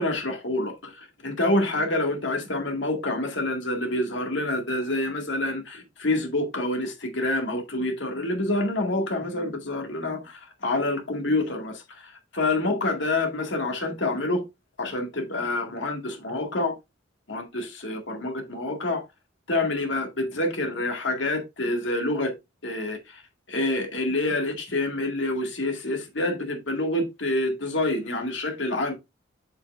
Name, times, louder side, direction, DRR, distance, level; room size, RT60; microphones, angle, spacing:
voice 1, 0.0-14.4 14.8-16.7 17.3-19.0 19.5-22.3 22.6-23.2 23.5-28.9, left 2 dB, 70° left, 2.0 m, -27 dB
8.5 x 5.8 x 2.5 m
head